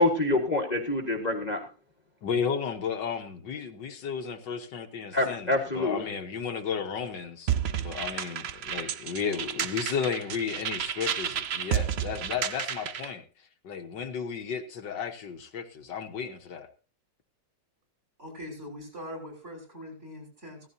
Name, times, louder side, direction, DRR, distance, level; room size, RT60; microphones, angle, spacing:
voice 1, 0.0-1.6 5.1-6.0, left 2 dB, 25° left, 1 dB, 1.6 m, -26 dB
voice 2, 2.2-16.7, left 6 dB, 75° left, 5 dB, 1.9 m, -34 dB
sound 1, 7.5-13.1, right 9 dB, 65° right, 0.6 m, -31 dB
voice 3, 18.2-20.7, left 1 dB, 35° right, 1 dB, 6.9 m, -42 dB
17.0 x 14.5 x 2.7 m, 0.34 s
omnidirectional pair, 2.0 m